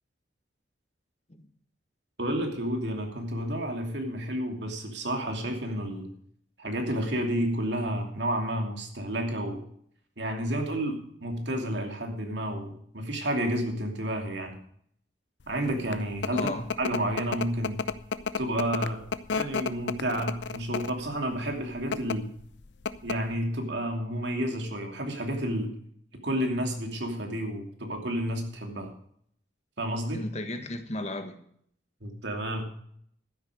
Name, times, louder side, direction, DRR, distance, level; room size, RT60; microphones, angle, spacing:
voice 1, 2.2-6.1 6.6-9.6 10.2-14.6 15.5-17.8 18.4-19.0 19.3-22.3 23.0-25.7 26.2-28.9 29.8-30.2 32.0-32.6, right 1 dB, 70° right, 3 dB, 2.8 m, -31 dB
sound 1, 15.6-21.1 21.8-22.2 22.5-22.6 22.9-23.3, left 5 dB, 70° left, 0.6 m, -31 dB
voice 2, 16.3-16.7 30.1-31.4, left 2 dB, 35° left, 7 dB, 1.5 m, -34 dB
12.5 x 10.0 x 5.0 m, 0.66 s
head